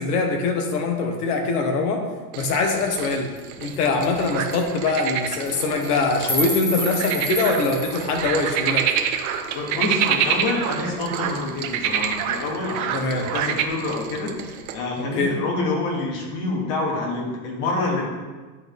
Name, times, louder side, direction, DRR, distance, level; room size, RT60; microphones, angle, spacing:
voice 1, 0.0-2.0 2.3-3.3 3.6-8.9 12.9-13.3 15.2-15.3, left 3 dB, 75° left, 3 dB, 1.4 m, -23 dB
Rain, 2.3-14.7, right 8 dB, 65° right, 0.9 m, -38 dB
sound 1, 3.4-3.5 3.7-3.8 4.0-4.2 4.5-4.6 5.3-5.5 5.8-8.1, equal, 10° left, 1.1 m, -29 dB
sound 2, 4.2-4.5 4.9-11.4 11.6-13.7, right 9 dB, 40° right, 0.7 m, -26 dB
voice 2, 9.5-18.1, left 2 dB, 55° left, -2 dB, 2.3 m, -27 dB
9.8 x 4.3 x 3.6 m, 1.3 s
supercardioid pair, 120°, 46 cm